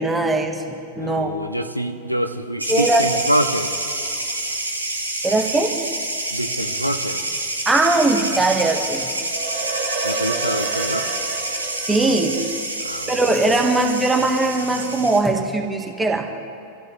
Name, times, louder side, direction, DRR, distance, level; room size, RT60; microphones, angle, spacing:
voice 1, 0.0-1.3 2.7-3.1 5.2-5.8 7.7-9.1 11.9-12.4 13.1-16.3, right 2 dB, 10° right, 3 dB, 1.8 m, -20 dB
voice 2, 1.0-3.7 6.3-7.2 10.0-11.2 12.8-13.5, equal, 90° left, 9 dB, 0.9 m, -26 dB
sound 1, 2.6-15.2, right 1 dB, 85° right, 1.9 m, -27 dB
sound 2, 9.2-13.8, right 4 dB, 55° right, 1.7 m, -30 dB
26.0 x 15.0 x 3.5 m, 2.9 s
figure-of-eight pair, 90°, 0 cm